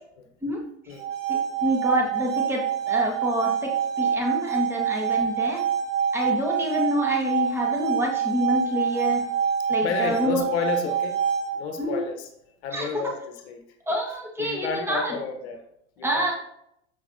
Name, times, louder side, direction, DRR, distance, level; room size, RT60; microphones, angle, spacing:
sound 1, 0.9-11.9, right 8 dB, 85° right, 2.6 m, -26 dB
voice 1, 1.3-5.6 6.1-9.2 9.7-10.4 11.8-12.0 12.7-13.0 13.9-15.2 16.0-16.3, equal, 5° right, -1 dB, 1.5 m, -27 dB
voice 2, 9.8-11.2 11.5-12.3 12.6-13.6 14.4-15.6 16.0-16.3, left 5 dB, 60° left, 6 dB, 1.1 m, -30 dB
7.0 x 5.9 x 2.8 m, 0.74 s
hypercardioid pair, 85°, 37 cm